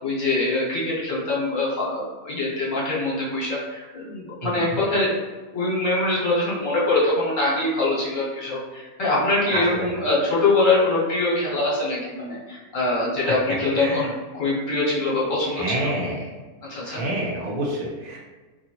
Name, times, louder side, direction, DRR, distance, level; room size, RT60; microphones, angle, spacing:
voice 1, 0.0-5.2 5.5-15.9 16.7-17.0, left 2 dB, 60° left, -6 dB, 1.2 m, -23 dB
voice 2, 4.4-4.8 9.5-9.9 13.2-13.4 13.7-14.1 15.4-16.3 16.8-18.2, right 1 dB, 70° right, -2 dB, 1.1 m, -28 dB
2.8 x 2.7 x 2.7 m, 1.3 s
omnidirectional pair, 1.6 m